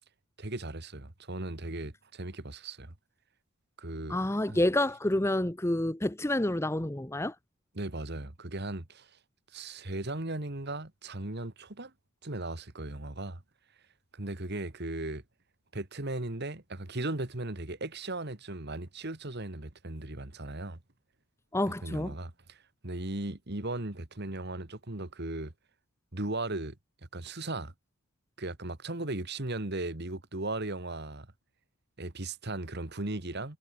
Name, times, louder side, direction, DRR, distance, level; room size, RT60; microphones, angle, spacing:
voice 1, 0.4-2.9 3.8-4.2 4.5-4.6 7.8-9.2 9.5-11.9 12.2-13.4 14.1-15.2 15.7-20.8 21.8-25.5 26.1-26.8 27.1-27.7 28.4-31.3 32.0-33.6, right 2 dB, 45° right, 1.9 m, -37 dB
voice 2, 4.1-7.3 21.5-22.1, left 1 dB, 10° left, 0.7 m, -28 dB
head